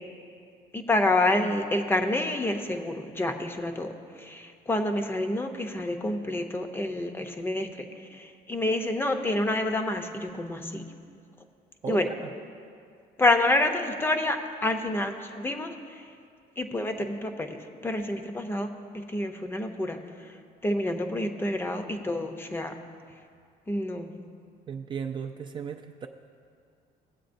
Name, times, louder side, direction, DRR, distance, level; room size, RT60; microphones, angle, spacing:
voice 1, 0.7-10.8 11.9-12.1 13.2-16.0 16.6-17.6 17.8-18.7 18.9-20.4 20.6-22.7 23.7-24.1, left 2 dB, 15° left, 6 dB, 0.6 m, -28 dB
voice 2, 11.8-12.3 24.7-26.1, right 6 dB, 30° right, 5 dB, 0.3 m, -35 dB
17.5 x 7.9 x 2.6 m, 2.3 s
cardioid pair, 150°, 16 cm